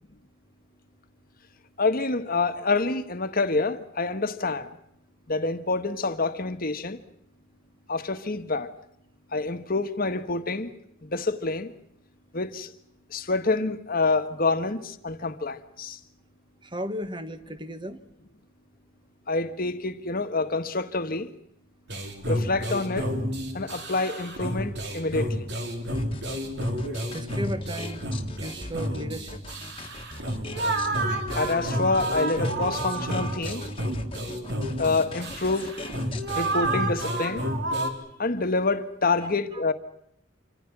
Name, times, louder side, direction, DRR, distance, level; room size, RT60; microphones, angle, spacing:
voice 1, 1.8-4.7 5.3-7.0 7.9-8.7 9.3-10.7 11.0-11.7 12.3-12.7 13.1-16.0 19.3-21.3 22.3-23.1 23.5-25.5 31.3-33.6 34.8-35.7 36.3-37.5 38.2-39.7, left 3 dB, 45° left, 1.5 m, -27 dB
voice 2, 16.6-18.0 27.1-28.1 28.4-29.4 39.5-39.6, equal, 25° right, 1.6 m, -35 dB
sound 1, 21.9-37.9, right 1 dB, 60° right, 3.5 m, -30 dB
sound 2, 25.9-36.6, left 2 dB, 30° left, 1.7 m, -41 dB
27.5 x 25.0 x 6.1 m
head